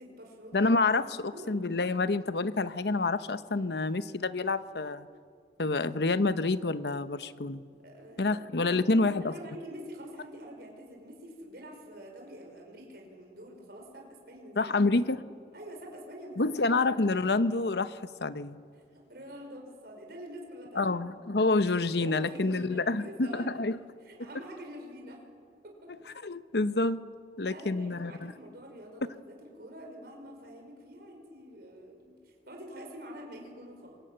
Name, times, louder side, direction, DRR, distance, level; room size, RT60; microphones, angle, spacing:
voice 1, 0.0-0.6 1.3-1.5 7.7-14.8 15.5-16.8 18.9-20.9 22.0-23.6 24.0-25.2 25.6-25.9 27.4-32.1 32.5-34.0, equal, 60° right, 1 dB, 5.4 m, -46 dB
voice 2, 0.5-5.1 5.6-7.6 8.2-9.3 14.6-15.2 16.4-18.6 20.7-23.8 26.2-27.0 27.4-28.3, left 3 dB, 65° left, 13 dB, 0.9 m, -28 dB
25.0 x 21.0 x 9.0 m, 2.2 s
head